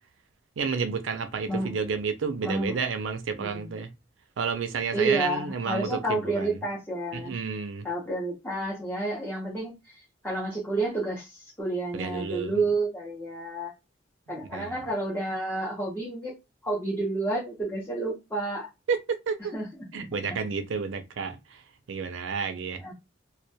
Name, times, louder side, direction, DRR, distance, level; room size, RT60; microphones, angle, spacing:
voice 1, 0.6-3.9 4.4-6.6 7.1-7.9 11.9-12.6 14.5-14.8 18.9-19.5 19.9-21.6 21.9-22.8, right 5 dB, 85° right, 0.4 m, -31 dB
voice 2, 2.4-2.8 3.4-3.7 4.9-7.3 7.8-13.7 14.3-16.4 16.6-18.7 19.5-19.7 22.8-22.9, right 2 dB, 10° left, 0.6 m, -30 dB
2.2 x 2.2 x 2.7 m
head